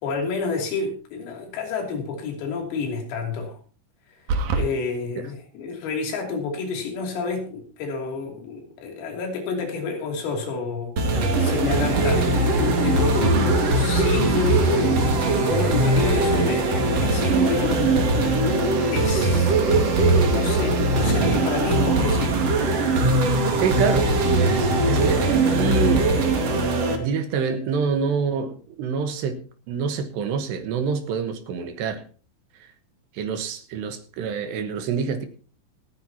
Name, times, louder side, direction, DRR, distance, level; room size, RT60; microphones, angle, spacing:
voice 1, 0.0-3.6 4.5-18.5 18.9-22.4, left 4 dB, 80° left, 5.6 m, -29 dB
sound 1, 4.3-4.7, right 3 dB, 85° right, 1.7 m, -23 dB
sound 2, 11.0-27.0, right 2 dB, 55° right, 1.9 m, -20 dB
voice 2, 13.2-13.6 23.6-26.1 27.0-32.0 32.6-32.7 33.1-35.3, right 6 dB, 70° right, 3.0 m, -27 dB
27.0 x 9.6 x 2.9 m
omnidirectional pair, 5.9 m